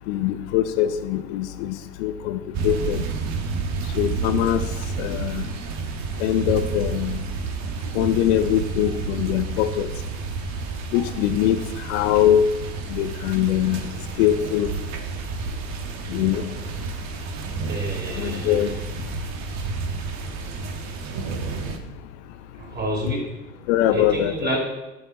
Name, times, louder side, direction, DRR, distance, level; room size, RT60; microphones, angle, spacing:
voice 1, 0.1-3.0 4.0-4.6 5.0-5.4 6.2-7.2 7.9-9.9 10.9-11.6 11.9-12.5 12.9-13.9 14.2-14.7 16.1-16.4 18.2-18.7 23.7-24.6, left 11 dB, 60° left, 9 dB, 0.7 m, -22 dB
sound 1, 2.5-21.8, right 5 dB, 45° right, 1.2 m, -30 dB
voice 2, 17.7-18.8 22.6-23.3 23.9-24.6, right 1 dB, 25° right, -1 dB, 3.7 m, -29 dB
12.0 x 5.9 x 4.0 m, 1.0 s
hypercardioid pair, 80°, 39 cm